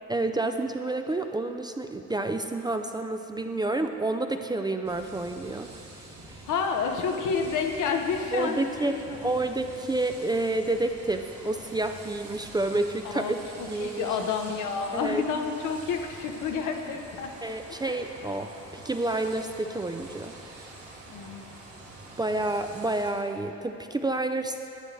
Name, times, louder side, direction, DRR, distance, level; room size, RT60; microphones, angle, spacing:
voice 1, 0.1-5.7 6.0-6.4 8.3-13.4 13.6-14.1 14.9-15.2 17.4-20.4 22.2-24.7, right 2 dB, 15° right, 6 dB, 0.3 m, -29 dB
sound 1, 4.8-23.1, right 2 dB, 55° right, 2.0 m, -46 dB
voice 2, 6.4-9.2 13.0-13.3 13.6-17.3 17.9-18.0 21.1-21.5, left 5 dB, 80° left, 4 dB, 0.9 m, -29 dB
11.0 x 8.9 x 3.1 m, 2.8 s
cardioid pair, 90°, 30 cm